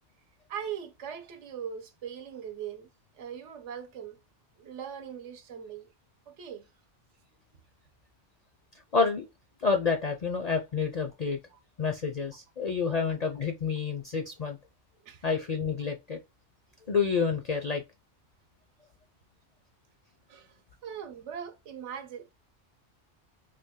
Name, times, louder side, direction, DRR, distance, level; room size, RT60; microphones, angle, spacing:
voice 1, 0.5-2.9 3.2-4.2 4.6-5.9 6.3-6.7 11.5-11.6 15.0-15.2 20.3-20.6 20.8-22.3, right 8 dB, 80° right, 1.0 m, -40 dB
voice 2, 8.9-9.3 9.6-11.4 11.8-14.6 15.2-16.2 16.9-17.8, left 5 dB, 55° left, 0.4 m, -28 dB
3.3 x 2.3 x 3.5 m
omnidirectional pair, 1.2 m